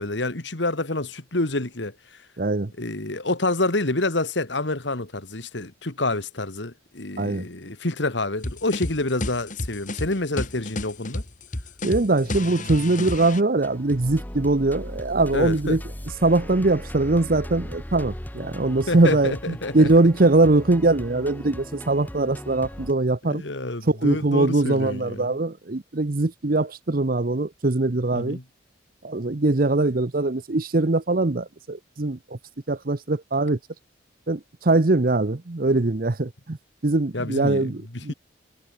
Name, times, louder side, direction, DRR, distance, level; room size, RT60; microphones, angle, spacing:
voice 1, 0.0-1.9 2.8-11.2 15.3-15.8 18.9-19.9 23.2-25.4 28.1-28.4 37.1-38.1, left 2 dB, 70° left, 2.2 m, -28 dB
voice 2, 2.4-2.7 7.2-7.5 11.8-15.8 16.2-23.4 23.9-28.4 29.0-32.2 32.7-33.6 34.3-36.6 36.8-38.1, right 2 dB, 50° right, 0.9 m, -22 dB
sound 1, 8.4-13.4, left 1 dB, 40° left, 2.6 m, -31 dB
sound 2, 13.6-22.9, equal, 10° left, 1.5 m, -37 dB
head